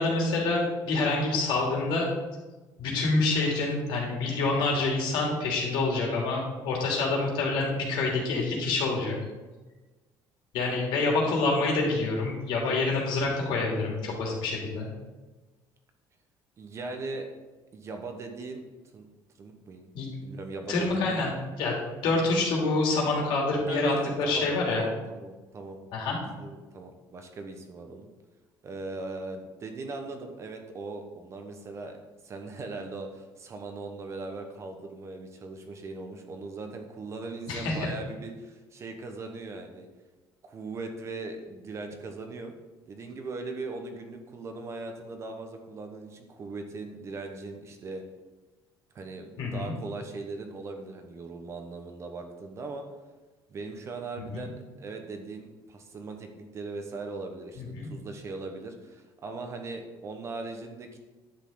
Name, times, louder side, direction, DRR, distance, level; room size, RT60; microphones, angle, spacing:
voice 1, 0.0-2.1 2.8-9.1 10.5-14.9 19.9-20.1 20.7-21.3 21.6-24.8 25.9-26.2 37.5-37.9 49.4-49.7 54.3-54.5 57.6-57.9, left 3 dB, 80° left, -2 dB, 3.0 m, -27 dB
voice 2, 16.6-17.3 17.7-18.6 18.9-19.1 19.4-19.9 20.2-21.3 22.0-22.1 23.7-25.8 26.2-28.1 28.6-32.0 32.2-39.9 40.4-42.5 42.9-48.0 48.9-52.8 53.5-61.0, right 3 dB, 35° right, 5 dB, 1.2 m, -39 dB
10.5 x 7.3 x 4.0 m, 1.2 s
cardioid pair, 145°, 8 cm